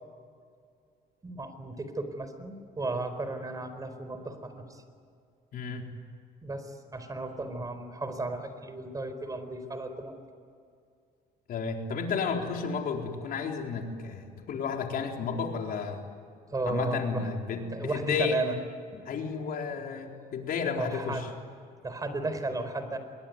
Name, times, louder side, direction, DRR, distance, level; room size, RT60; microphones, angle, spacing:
voice 1, 1.2-4.8 6.4-10.2 16.5-17.3 17.7-18.6 20.7-21.3 21.8-23.0, right 2 dB, 20° right, 9 dB, 4.4 m, -34 dB
voice 2, 5.5-5.9 11.5-16.0 16.6-18.4 19.1-21.3, left 5 dB, 60° left, 2 dB, 4.2 m, -32 dB
26.5 x 22.5 x 9.6 m, 2.3 s
cardioid pair, 110°, 17 cm